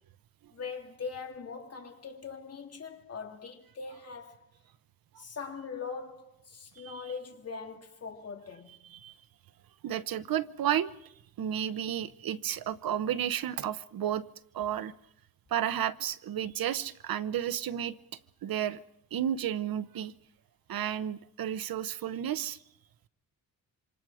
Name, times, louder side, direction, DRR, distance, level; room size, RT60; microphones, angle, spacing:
voice 1, 0.5-4.4 5.2-8.8, left 5 dB, 45° left, 3.0 m, -41 dB
voice 2, 9.8-11.1 11.4-14.2 14.5-14.9 15.5-17.9 18.4-18.8 19.1-20.1 20.7-22.6, right 10 dB, 80° right, 0.9 m, -32 dB
27.0 x 25.5 x 5.0 m
wide cardioid pair, 125°, 35 cm